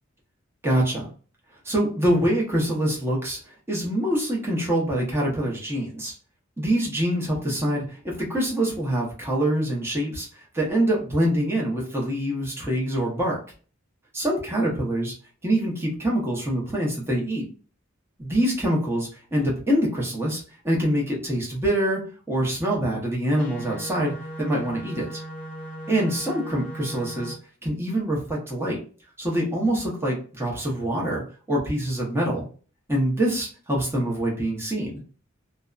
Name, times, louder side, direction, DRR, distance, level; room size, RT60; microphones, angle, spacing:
voice 1, 0.6-1.1 1.6-6.1 6.6-13.4 14.1-15.1 15.4-17.5 18.2-22.0 22.3-25.2 25.9-27.3 27.6-28.8 29.2-31.2 31.5-32.4 32.9-35.0, right 1 dB, 10° right, -4 dB, 0.9 m, -25 dB
sound 1, 23.4-27.3, right 1 dB, 65° left, 0.8 m, -37 dB
2.6 x 2.2 x 2.4 m, 0.39 s
head